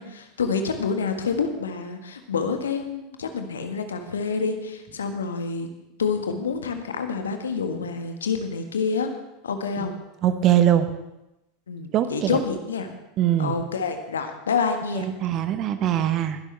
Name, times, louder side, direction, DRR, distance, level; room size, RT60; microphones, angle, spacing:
voice 1, 0.0-5.7 6.0-9.1 9.4-10.0 11.7-12.9 13.4-15.0, left 5 dB, 70° left, 6 dB, 1.5 m, -27 dB
voice 2, 10.2-10.9 11.9-12.4 13.2-13.6 14.9-16.4, right 11 dB, 40° right, 11 dB, 1.0 m, -22 dB
21.0 x 11.5 x 3.4 m, 0.92 s
figure-of-eight pair, 80°, 0 cm